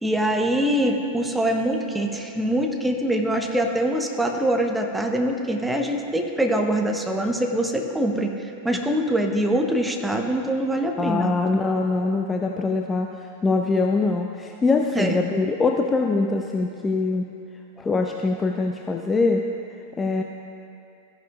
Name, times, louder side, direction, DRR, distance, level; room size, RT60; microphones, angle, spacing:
voice 1, 0.0-8.3 8.6-11.3 14.9-15.2, right 1 dB, 5° right, 3 dB, 0.8 m, -23 dB
voice 2, 11.0-17.3 17.8-19.4 20.0-20.2, left 3 dB, 15° left, 3 dB, 0.4 m, -23 dB
14.5 x 10.0 x 2.4 m, 2.7 s
figure-of-eight pair, 90°, 0 cm